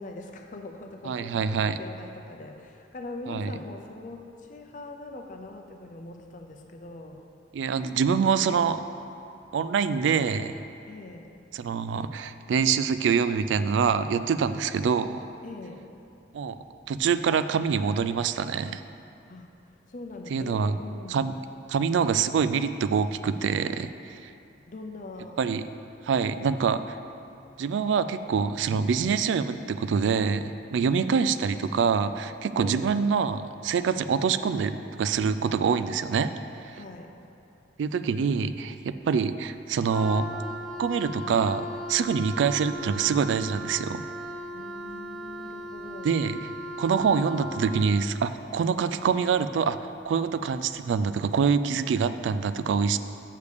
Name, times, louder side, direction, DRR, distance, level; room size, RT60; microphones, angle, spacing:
voice 1, 0.0-7.2 10.9-11.3 15.4-15.8 19.3-19.5 19.9-21.2 24.7-25.4 30.8-31.1 32.6-32.9 36.7-37.1 44.5-46.2, left 2 dB, 45° left, 3 dB, 0.6 m, -42 dB
voice 2, 1.0-1.8 3.3-3.5 7.5-8.8 9.5-10.5 11.5-15.3 16.3-16.6 16.9-18.8 20.3-20.8 21.1-21.4 21.7-24.3 25.4-25.6 26.1-27.0 27.6-36.3 36.6-36.8 37.8-40.3 40.8-44.0 46.0-46.4 46.8-49.8 50.0-53.0, right 6 dB, 85° right, 12 dB, 0.3 m, -25 dB
Wind instrument woodwind instrument, 39.9-48.0, equal, ahead, 0.4 m, -37 dB
6.7 x 5.0 x 6.7 m, 2.7 s
head